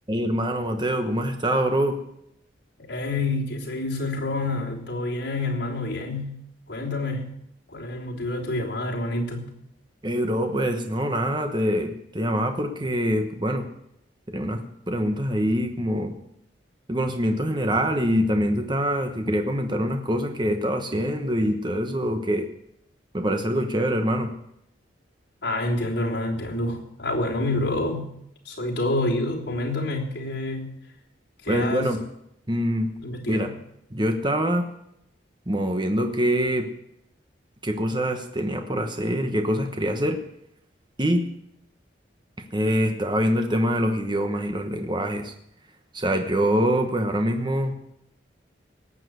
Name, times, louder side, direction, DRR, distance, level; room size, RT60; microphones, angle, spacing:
voice 1, 0.1-2.0 10.0-13.6 14.3-16.2 16.9-22.4 23.1-24.3 31.5-32.0 32.5-32.9 33.3-33.5 33.9-34.7 35.5-36.7 37.6-40.2 41.0-41.2 42.5-45.3 45.9-47.7, equal, 25° right, 5 dB, 1.1 m, -24 dB
voice 2, 2.8-6.4 6.7-7.3 7.7-9.5 25.4-28.1 28.4-30.7 31.4-31.9 33.0-33.5, left 2 dB, 70° left, -3 dB, 3.3 m, -28 dB
18.0 x 7.5 x 8.0 m, 0.77 s
head